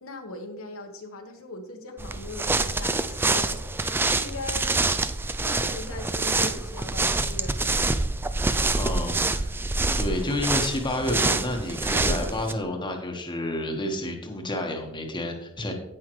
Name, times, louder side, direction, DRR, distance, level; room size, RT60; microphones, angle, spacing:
voice 1, 0.0-5.0 5.4-8.0, left 2 dB, 65° left, 3 dB, 1.2 m, -40 dB
sound 1, 2.0-12.5, right 3 dB, 10° right, 0.3 m, -26 dB
voice 2, 8.4-9.5 9.9-15.7, left 1 dB, 20° left, 2 dB, 1.2 m, -30 dB
16.5 x 5.6 x 3.1 m, 0.86 s
head